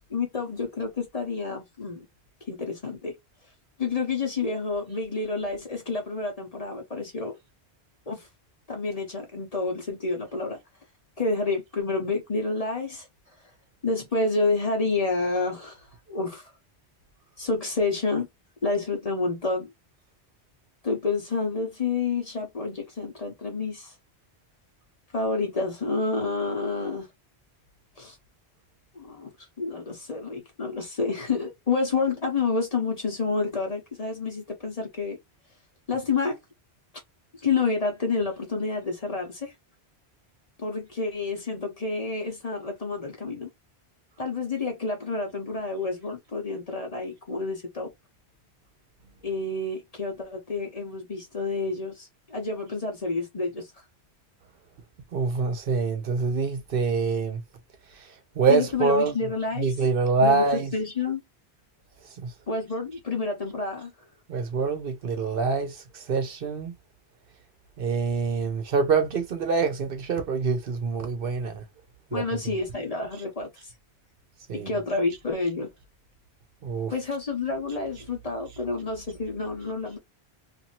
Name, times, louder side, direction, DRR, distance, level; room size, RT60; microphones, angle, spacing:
voice 1, 0.0-2.0 2.5-3.1 3.8-7.4 8.1-8.3 8.7-10.6 11.2-13.1 13.8-16.5 17.4-18.3 18.6-19.7 20.8-23.9 25.1-27.1 28.0-28.2 28.9-29.3 29.6-35.2 35.9-36.3 37.4-39.5 40.6-43.5 44.2-47.9 49.2-53.7 58.5-59.7 60.2-61.2 62.5-63.9 72.1-73.7 74.5-75.7 76.9-80.0, left 3 dB, 40° left, 0.9 m, -29 dB
voice 2, 55.1-57.4 58.4-59.1 59.6-60.7 62.2-62.3 64.3-66.7 67.8-71.6 72.1-72.2 74.5-74.7 76.6-76.9, right 4 dB, 60° right, 0.8 m, -25 dB
2.7 x 2.6 x 2.7 m
omnidirectional pair, 1.1 m